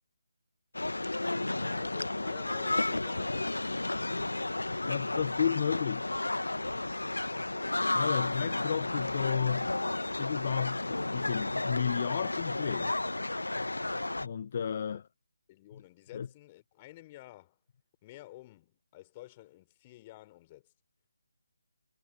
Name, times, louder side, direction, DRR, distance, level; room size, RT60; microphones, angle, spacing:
sound 1, 0.7-14.3, left 2 dB, 80° left, 1.1 m, -32 dB
voice 1, 1.5-3.6 14.9-15.0 15.5-17.6 18.0-20.6, left 17 dB, 20° left, 3.6 m, -51 dB
voice 2, 4.9-6.1 7.9-9.7 10.2-13.0 14.2-15.0 15.7-15.8 16.1-16.3, left 7 dB, 40° left, 0.9 m, -32 dB
figure-of-eight pair, 150°, 0 cm